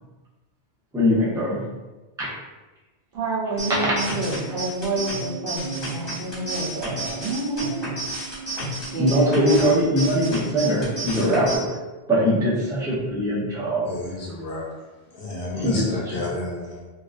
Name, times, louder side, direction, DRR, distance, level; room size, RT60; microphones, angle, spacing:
voice 1, 0.9-1.6 2.2-2.3 3.8-3.9 9.0-11.8 12.1-14.0 15.5-16.3, equal, 5° right, -8 dB, 0.4 m, -22 dB
voice 2, 3.1-8.1 8.5-9.7, right 2 dB, 65° right, -6 dB, 0.9 m, -29 dB
sound 1, 3.6-11.6, right 2 dB, 25° left, 0.8 m, -32 dB
voice 3, 13.9-14.6 15.1-16.8, left 2 dB, 60° left, -4 dB, 0.7 m, -31 dB
2.4 x 2.1 x 2.4 m, 1.2 s
omnidirectional pair, 1.1 m